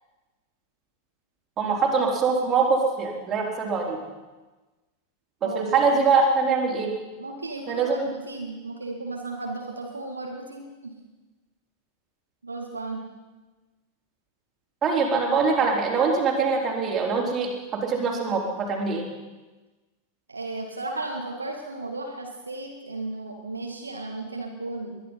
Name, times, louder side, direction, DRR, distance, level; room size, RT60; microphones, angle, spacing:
voice 1, 1.6-4.0 5.4-6.9 7.7-8.1 14.8-19.0, right 4 dB, 25° right, -2 dB, 3.9 m, -23 dB
voice 2, 5.4-6.0 7.2-11.0 12.4-13.0 20.3-25.0, right 2 dB, 80° right, 1 dB, 1.9 m, -35 dB
21.5 x 11.5 x 5.5 m, 1.2 s
figure-of-eight pair, 90°, 0 cm